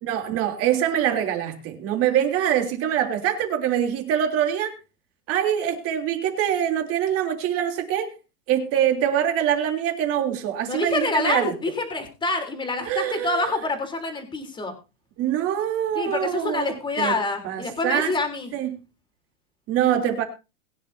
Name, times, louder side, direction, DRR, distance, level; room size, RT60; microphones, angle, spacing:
voice 1, 0.0-4.7 5.3-8.1 8.5-11.5 12.8-13.5 15.2-17.1 17.4-18.1 18.5-18.8 19.7-20.2, right 10 dB, 30° right, 3.3 m, -24 dB
voice 2, 10.7-14.7 15.9-18.5, left 3 dB, 10° left, 3.7 m, -27 dB
22.0 x 10.5 x 2.8 m
hypercardioid pair, 150°, 45 cm